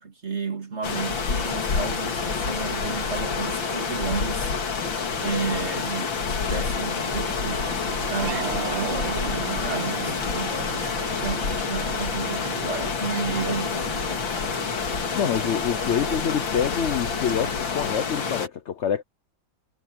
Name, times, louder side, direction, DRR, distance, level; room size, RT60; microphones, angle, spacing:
voice 1, 0.0-4.5 5.2-7.8 8.1-10.5 11.0-14.3, right 5 dB, 35° right, 2.8 m, -32 dB
sound 1, 0.8-18.5, left 5 dB, 90° left, 2.9 m, -28 dB
sound 2, 7.1-16.2, right 7 dB, 75° right, 2.2 m, -37 dB
voice 2, 15.1-19.0, left 8 dB, 60° left, 0.7 m, -26 dB
omnidirectional pair, 2.0 m